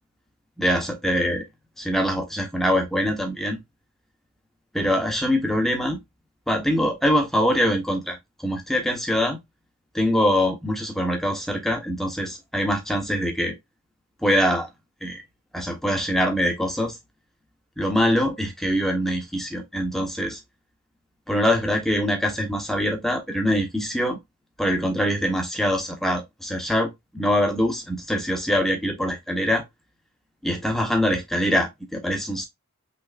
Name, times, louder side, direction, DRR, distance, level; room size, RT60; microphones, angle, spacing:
voice 1, 0.6-1.4 1.8-3.6 4.7-6.0 6.5-9.4 9.9-13.5 14.2-14.7 15.0-15.2 15.5-17.0 17.8-20.4 21.3-24.2 24.6-29.6 30.4-32.4, equal, ahead, 1.2 m, -23 dB
5.4 x 3.8 x 2.5 m
head